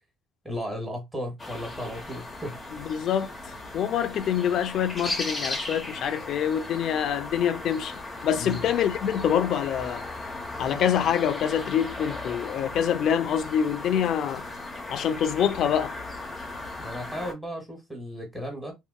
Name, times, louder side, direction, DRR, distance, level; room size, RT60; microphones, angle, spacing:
voice 1, 0.4-2.6 8.4-8.6 16.8-18.7, equal, 5° right, 1.2 m, -35 dB
sound 1, 1.4-17.3, left 2 dB, 25° left, 0.8 m, -37 dB
voice 2, 2.9-10.0 10.6-14.4 14.9-15.9, left 9 dB, 55° left, 0.4 m, -26 dB
3.6 x 2.1 x 2.2 m
cardioid pair, 120°, 0 cm